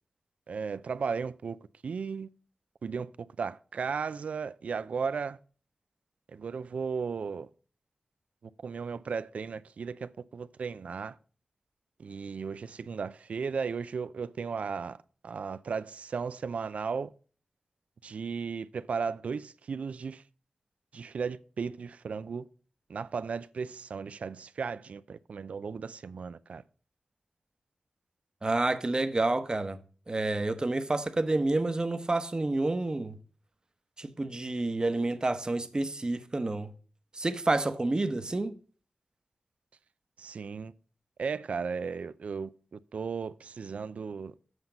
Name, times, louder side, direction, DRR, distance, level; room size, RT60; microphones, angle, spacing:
voice 1, 0.5-1.6 1.8-2.3 2.8-5.4 6.3-7.5 8.4-11.2 12.0-15.0 15.2-17.1 18.0-20.2 20.9-22.5 22.9-26.6 40.2-40.7 41.2-44.3, right 5 dB, 80° right, 0.4 m, -35 dB
voice 2, 28.4-29.8 30.1-33.2 34.0-36.7 37.1-38.6, right 2 dB, 35° right, 0.9 m, -29 dB
8.0 x 5.7 x 5.2 m
cardioid pair, 45°, 2 cm